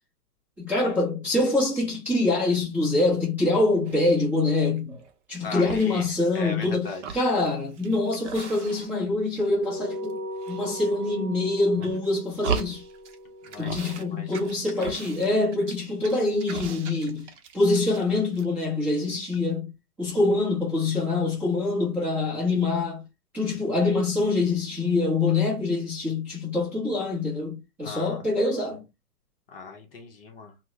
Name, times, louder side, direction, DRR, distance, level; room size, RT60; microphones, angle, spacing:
voice 1, 0.6-5.0 5.3-10.2 10.5-12.8 13.6-17.3 17.5-19.7 20.0-23.1 23.3-28.8, left 2 dB, 5° right, 0.6 m, -25 dB
sound 1, 3.8-4.3 4.8-5.4 5.6-6.6 6.9-9.1 9.3-10.1 10.4-11.2 11.6-13.2 13.4-14.0 14.3-18.1 18.3-18.5, right 6 dB, 50° right, 0.7 m, -37 dB
voice 2, 5.4-6.1 6.3-7.2 13.4-14.4 27.8-28.2 29.5-30.5, left 5 dB, 40° left, 0.7 m, -38 dB
sound 2, 9.5-14.3, equal, 20° right, 1.1 m, -39 dB
2.7 x 2.1 x 3.5 m
hypercardioid pair, 155°, 45 cm